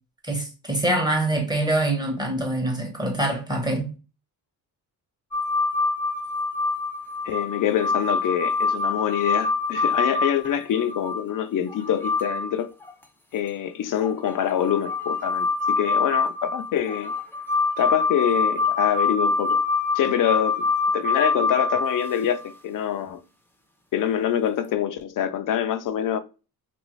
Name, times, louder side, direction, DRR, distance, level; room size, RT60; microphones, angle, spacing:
voice 1, 0.2-3.9, right 1 dB, 10° right, 1.0 m, -24 dB
sound 1, 5.3-11.2 11.7-12.5 12.8-12.9 14.0-22.5 24.6-24.7, left 4 dB, 5° left, 0.6 m, -25 dB
voice 2, 7.3-12.7 13.3-17.1 17.8-19.6 19.9-20.7 20.9-23.2 23.9-26.2, left 10 dB, 55° left, 0.5 m, -25 dB
3.0 x 2.6 x 3.0 m
cardioid pair, 100°, 40 cm